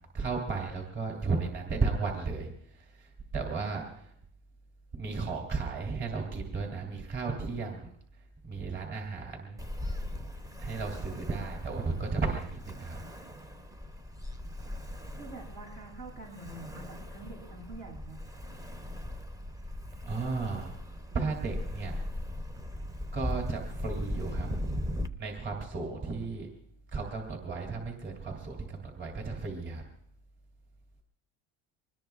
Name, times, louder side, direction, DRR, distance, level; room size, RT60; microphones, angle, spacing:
voice 1, 0.1-4.1 4.9-9.6 10.6-13.0 20.0-20.7 21.1-22.0 23.1-24.5 25.2-26.5 26.9-29.8, right 4 dB, 35° right, 1 dB, 3.1 m, -34 dB
Ocean, 9.6-25.1, left 1 dB, 10° right, 0.6 m, -39 dB
voice 2, 15.2-18.2, right 2 dB, 85° right, -1 dB, 7.9 m, -46 dB
24.5 x 20.0 x 2.4 m, 0.67 s
supercardioid pair, 130°, 33 cm